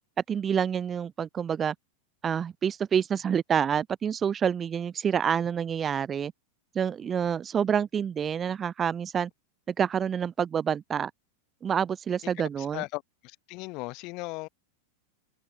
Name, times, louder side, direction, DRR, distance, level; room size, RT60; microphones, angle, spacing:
voice 1, 0.3-1.7 2.2-6.3 6.7-9.3 9.7-11.1 11.6-12.8, right 8 dB, 20° right, 0.9 m, -27 dB
voice 2, 12.6-14.5, left 25 dB, 40° left, 6.6 m, -37 dB
figure-of-eight pair, 90°, 0 cm